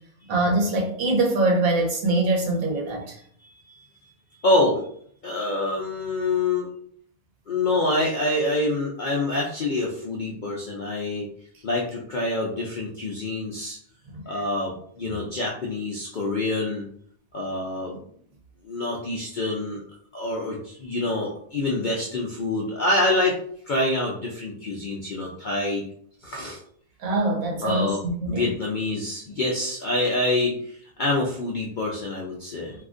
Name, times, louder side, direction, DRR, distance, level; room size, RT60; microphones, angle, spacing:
voice 1, 0.3-3.2 14.1-14.2 27.0-28.5, right 2 dB, 90° right, 0 dB, 1.3 m, -23 dB
voice 2, 3.4-3.9 4.4-4.8 5.2-6.7 7.5-11.3 11.6-13.8 14.3-16.9 17.3-18.0 18.6-19.8 20.1-23.4 23.7-25.8 26.2-26.6 27.6-30.5 31.0-32.7, left 2 dB, 65° left, -3 dB, 0.4 m, -26 dB
2.8 x 2.4 x 3.6 m, 0.62 s
omnidirectional pair, 1.4 m